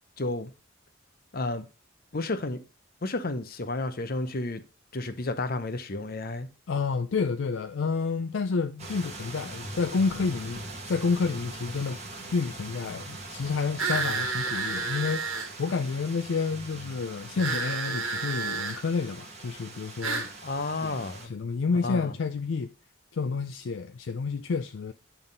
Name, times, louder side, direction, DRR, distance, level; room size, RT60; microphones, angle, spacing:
voice 1, 0.2-0.5 1.3-1.6 2.1-2.6 3.0-4.6 4.9-6.5 20.4-21.3 21.8-22.1, left 2 dB, 45° left, 0.8 m, -31 dB
voice 2, 6.7-10.6 10.9-12.0 12.3-20.3 20.8-21.0 21.2-22.7 23.1-24.9, left 4 dB, 65° left, 0.4 m, -29 dB
sound 1, 8.8-21.3, right 2 dB, 35° right, 1.5 m, -42 dB
sound 2, 13.8-15.5 17.4-18.8 20.0-20.3, right 4 dB, 80° right, 1.5 m, -30 dB
9.6 x 3.6 x 5.3 m
head